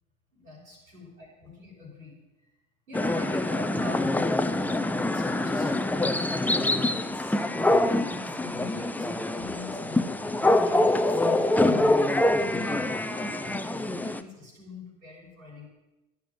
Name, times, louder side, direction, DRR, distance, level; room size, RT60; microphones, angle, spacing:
voice 1, 0.3-2.2 2.9-4.4 5.0-12.0 12.3-15.7, left 3 dB, 80° right, -7 dB, 6.2 m, -43 dB
sound 1, 2.9-14.2, left 1 dB, 5° left, 0.7 m, -25 dB
15.0 x 11.0 x 7.9 m, 1.0 s
figure-of-eight pair, 70°, 42 cm